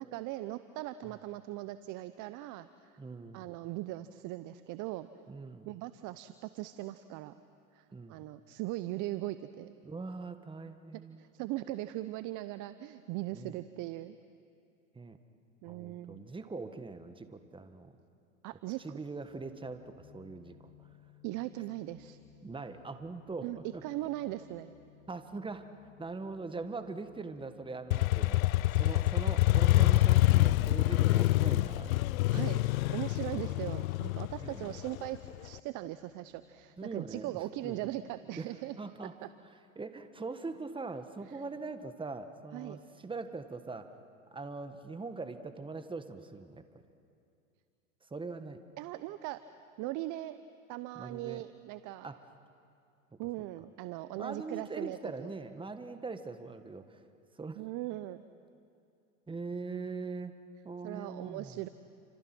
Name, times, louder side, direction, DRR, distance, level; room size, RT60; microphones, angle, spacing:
voice 1, 0.0-3.0 3.3-5.1 5.7-7.3 7.7-9.8 11.2-14.2 15.6-16.2 18.4-18.8 21.2-22.2 23.4-24.7 32.3-38.8 41.3-41.4 42.5-42.8 48.8-49.4 49.8-50.4 50.7-52.1 53.2-55.3 57.6-58.2 60.8-61.7, right 16 dB, 50° right, 13 dB, 0.8 m, -39 dB
voice 2, 3.0-3.5 5.3-5.7 7.9-8.2 9.8-11.3 13.3-13.6 14.9-15.2 15.6-17.9 18.8-20.9 22.4-24.1 25.1-25.7 26.0-28.4 28.8-31.9 32.3-32.5 33.3-33.6 34.4-34.8 36.8-37.8 38.4-38.5 38.8-39.1 39.4-43.9 44.3-46.6 48.0-48.6 50.9-51.4 52.0-52.2 53.1-53.2 54.1-57.0 57.4-57.6 59.3-60.3 60.6-61.6, right 3 dB, 10° right, 9 dB, 1.6 m, -42 dB
sound 1, 19.3-38.2, left 12 dB, 30° left, 7.9 m, -62 dB
Motorcycle, 27.9-35.5, left 17 dB, 80° left, 0.5 m, -26 dB
29.0 x 26.5 x 6.1 m, 2.5 s
hypercardioid pair, 95°, 41 cm